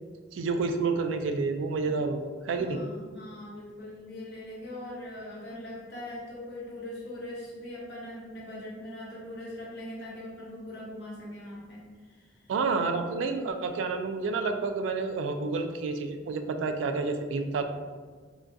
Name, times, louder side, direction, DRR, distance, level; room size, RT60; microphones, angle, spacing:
voice 1, 0.3-2.8 12.5-17.6, right 4 dB, 80° right, 7 dB, 0.3 m, -29 dB
voice 2, 2.6-12.4, left 1 dB, 60° left, -5 dB, 0.7 m, -41 dB
3.7 x 2.4 x 2.2 m, 1.5 s
head